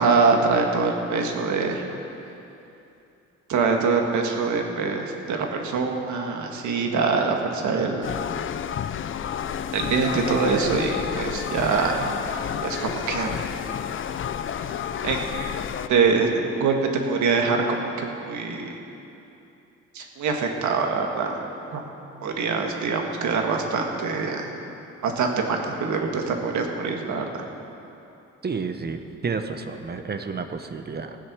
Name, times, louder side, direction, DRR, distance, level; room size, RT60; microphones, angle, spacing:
voice 1, 0.0-1.8 3.5-8.1 9.7-12.0 12.3-13.3 15.0-15.5 15.9-18.7 20.0-21.4 21.7-21.8 22.2-24.5 25.0-27.5, right 4 dB, 70° right, 2 dB, 1.7 m, -24 dB
sound 1, 8.0-15.9, left 8 dB, 40° left, 0.5 m, -30 dB
voice 2, 28.4-31.2, right 4 dB, 35° right, 7 dB, 0.8 m, -31 dB
16.0 x 7.8 x 6.1 m, 2.8 s
cardioid pair, 90°, 30 cm